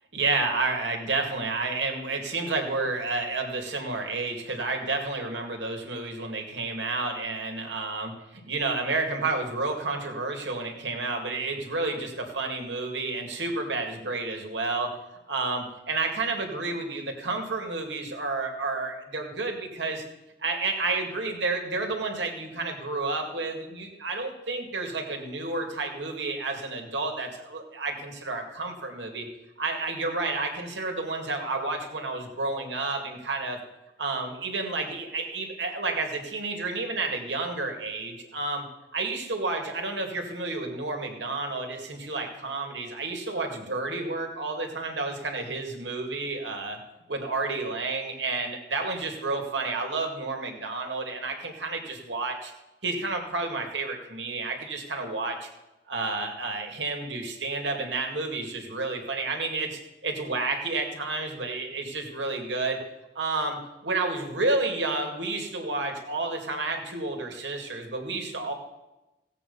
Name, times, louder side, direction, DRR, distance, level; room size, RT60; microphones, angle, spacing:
voice 1, 0.1-14.9 15.3-20.0 20.4-29.3 29.6-33.6 34.0-38.7 38.9-46.8 47.1-52.5 52.8-55.5 55.9-62.8 63.1-68.5, right 3 dB, 85° right, 3 dB, 2.2 m, -30 dB
16.0 x 8.2 x 5.5 m, 1.0 s
head